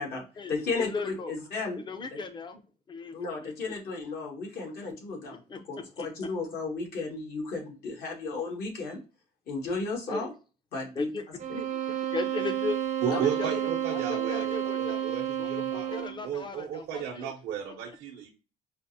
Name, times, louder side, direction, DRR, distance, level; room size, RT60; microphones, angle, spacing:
voice 1, 0.0-1.8 3.1-5.4 5.7-9.0 9.5-10.3 10.7-11.1 13.1-13.2, left 3 dB, 65° left, 0 dB, 1.6 m, -34 dB
voice 2, 0.8-1.4 1.9-2.6 2.9-3.1 3.4-3.5 5.5-5.6 6.0-6.1 10.1-10.2 11.0-11.3 11.5-12.8 13.1-15.1 15.4-17.3, left 3 dB, 25° left, 9 dB, 0.6 m, -36 dB
sound 1, 11.4-16.3, right 10 dB, 45° right, 0.6 m, -31 dB
voice 3, 13.0-18.3, right 8 dB, 85° right, -1 dB, 0.8 m, -34 dB
4.9 x 2.1 x 2.6 m, 0.33 s
cardioid pair, 110°, 17 cm